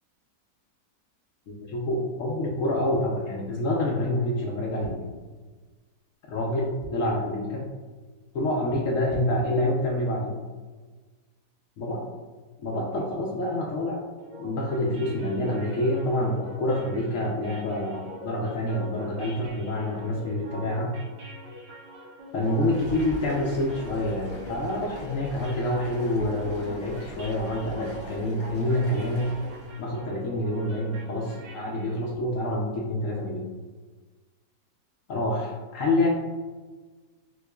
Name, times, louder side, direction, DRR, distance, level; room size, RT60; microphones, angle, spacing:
voice 1, 1.5-5.1 6.3-7.7 8.3-10.4 11.8-12.0 12.6-14.1 14.4-21.0 22.3-29.3 29.8-33.5 35.1-36.1, left 1 dB, 70° left, -2 dB, 0.8 m, -27 dB
sound 1, 4.8-5.8 6.3-6.4 6.5-7.3 7.8-8.0 8.3-8.4 8.9-9.6 10.0-10.1, right 2 dB, 30° right, 1.3 m, -42 dB
sound 2, 14.2-32.0, equal, 80° right, 1.6 m, -45 dB
Stream, 22.3-29.9, equal, 15° left, 0.6 m, -43 dB
6.3 x 2.3 x 2.2 m, 1.3 s
omnidirectional pair, 1.8 m